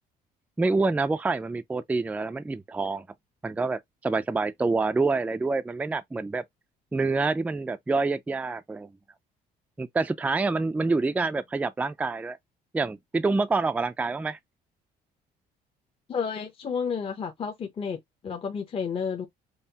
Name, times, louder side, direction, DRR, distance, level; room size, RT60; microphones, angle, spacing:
voice 1, 0.6-3.1 3.4-6.4 6.9-8.9 9.8-12.4 12.7-14.4, right 3 dB, 10° right, 0.3 m, -27 dB
voice 2, 16.1-19.3, left 6 dB, 35° left, 0.7 m, -31 dB
5.4 x 2.0 x 2.8 m
cardioid pair, 110°, 17 cm